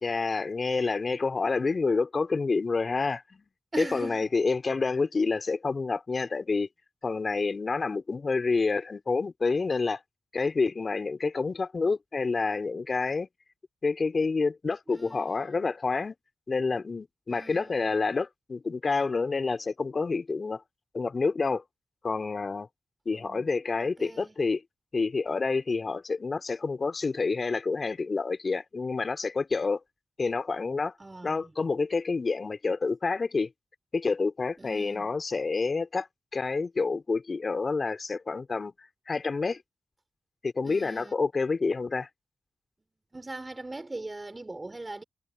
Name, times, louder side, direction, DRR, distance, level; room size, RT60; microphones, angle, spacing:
voice 1, 0.0-3.5 3.8-6.7 7.0-10.0 10.3-13.3 13.8-16.1 16.5-20.6 20.9-21.6 22.0-22.7 23.1-24.6 24.9-29.8 30.2-30.9 31.2-33.5 33.9-36.1 36.3-39.6 40.4-42.1, left 4 dB, 50° left, 3.6 m, -28 dB
voice 2, 3.7-4.3 14.9-15.7 17.3-17.9 23.1-23.5 23.8-24.3 31.0-31.5 34.6-35.1 40.6-41.1 43.1-45.0, right 2 dB, 30° right, 3.0 m, -40 dB
supercardioid pair, 45°, 0 cm